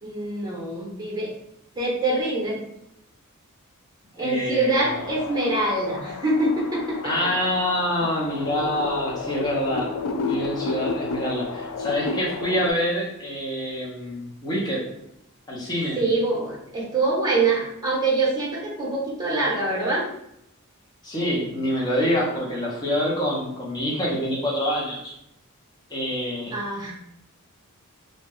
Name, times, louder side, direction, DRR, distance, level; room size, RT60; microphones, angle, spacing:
voice 1, 0.0-1.3 1.8-2.6 4.1-7.3 8.0-8.1 15.9-20.0 26.5-26.9, right 2 dB, 20° right, -4 dB, 0.9 m, -25 dB
voice 2, 4.2-5.0 7.0-9.9 10.2-14.8 15.5-16.0 21.0-25.1 25.9-26.6, equal, 20° left, -4 dB, 0.8 m, -26 dB
sound 1, 4.8-12.7, left 3 dB, 75° left, 0.3 m, -32 dB
2.6 x 2.3 x 3.3 m, 0.79 s
head